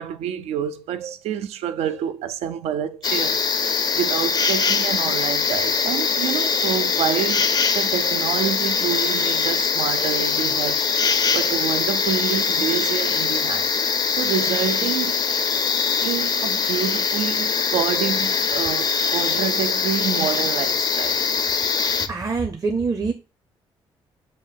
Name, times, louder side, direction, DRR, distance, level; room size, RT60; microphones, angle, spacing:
voice 1, 0.0-3.4 3.9-7.5 7.7-15.2 16.0-21.3, right 8 dB, 80° right, 0.4 m, -28 dB
sound 1, 3.0-22.1, left 5 dB, 40° left, 0.4 m, -22 dB
voice 2, 22.1-23.1, right 4 dB, 35° right, 0.6 m, -24 dB
5.2 x 2.2 x 3.4 m
supercardioid pair, 65°, 10 cm